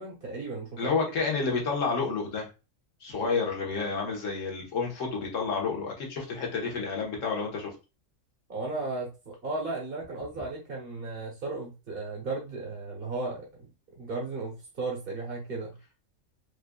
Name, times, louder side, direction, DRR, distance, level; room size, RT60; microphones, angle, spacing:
voice 1, 0.0-0.9 8.5-13.5 13.9-15.8, right 3 dB, 45° right, -2 dB, 1.1 m, -35 dB
voice 2, 0.8-2.5 3.0-7.7, left 4 dB, 70° left, -1 dB, 1.5 m, -30 dB
5.0 x 2.4 x 2.2 m, 0.29 s
omnidirectional pair, 1.4 m